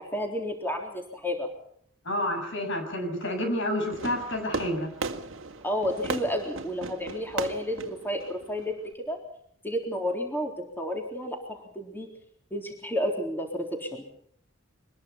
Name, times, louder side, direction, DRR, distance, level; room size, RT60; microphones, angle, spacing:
voice 1, 0.0-1.5 5.6-9.2 9.6-12.1 12.5-14.0, equal, 10° left, 2 dB, 3.7 m, -31 dB
voice 2, 2.1-4.9, left 1 dB, 65° left, 6 dB, 7.3 m, -29 dB
Fireworks, 3.9-8.9, right 4 dB, 70° right, 2.0 m, -37 dB
24.0 x 21.0 x 5.8 m, 0.66 s
head